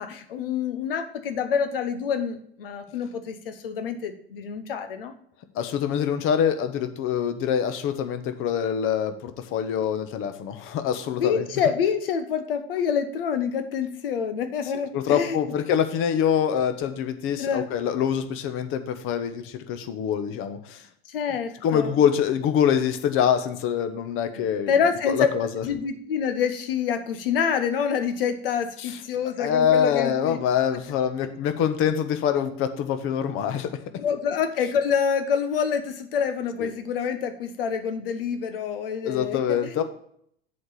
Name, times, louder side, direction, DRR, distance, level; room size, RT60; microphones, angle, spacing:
voice 1, 0.0-5.1 11.2-15.5 17.4-17.7 21.1-22.0 24.7-25.3 25.6-30.4 34.0-39.8, left 7 dB, 65° left, 9 dB, 1.2 m, -27 dB
voice 2, 5.5-11.5 14.9-20.8 21.6-24.7 25.1-25.6 28.8-29.0 29.4-33.7 33.9-34.0 36.6-36.7 39.0-39.8, left 8 dB, 45° left, 9 dB, 1.2 m, -25 dB
7.8 x 5.2 x 5.8 m, 0.65 s
figure-of-eight pair, 75°, 30 cm